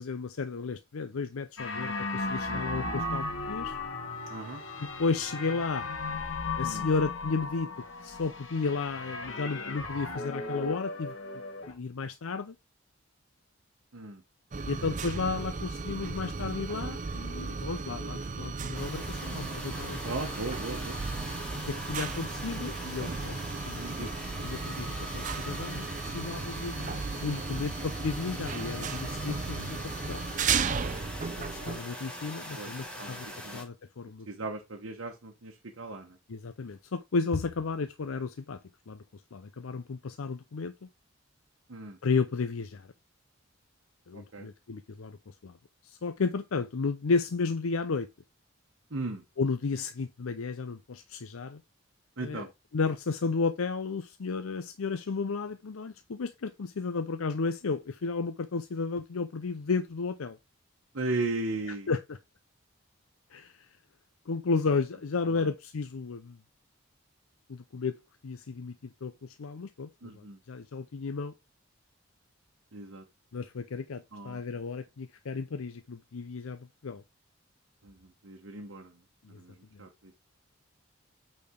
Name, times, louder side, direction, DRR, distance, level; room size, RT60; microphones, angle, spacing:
voice 1, 0.0-3.8 4.8-5.9 6.6-7.7 8.0-11.1 11.7-12.5 14.6-20.0 21.7-23.4 23.7-24.1 24.4-24.9 25.1-29.8 30.1-30.2 31.4-33.3 33.5-34.3 36.3-38.6 38.9-39.0 39.3-40.9 42.0-42.9 44.1-45.6 45.8-48.1 49.4-51.6 52.2-52.5 52.7-60.4 61.9-62.2 63.3-63.7 64.3-66.4 67.5-67.9 68.2-68.8 69.0-71.3 73.3-77.0 79.2-79.4 79.7-79.8, left 4 dB, 85° left, 0.6 m, -33 dB
sound 1, 1.6-11.7, left 3 dB, 65° left, 1.7 m, -36 dB
voice 2, 2.5-2.9 4.3-4.6 6.6-6.9 13.9-14.2 17.7-18.0 20.0-21.0 23.7-24.1 32.5-32.7 33.0-33.6 34.3-36.2 41.7-42.0 44.1-44.5 48.9-49.2 52.2-52.5 60.9-61.9 65.3-65.5 70.0-70.4 72.7-73.0 74.1-74.4 77.8-79.0 79.3-80.1, right 2 dB, 70° right, 1.1 m, -37 dB
sound 2, 14.5-31.8, right 4 dB, 35° right, 0.5 m, -35 dB
sound 3, 18.7-33.6, left 1 dB, 5° left, 1.7 m, -42 dB
8.5 x 4.3 x 3.6 m
head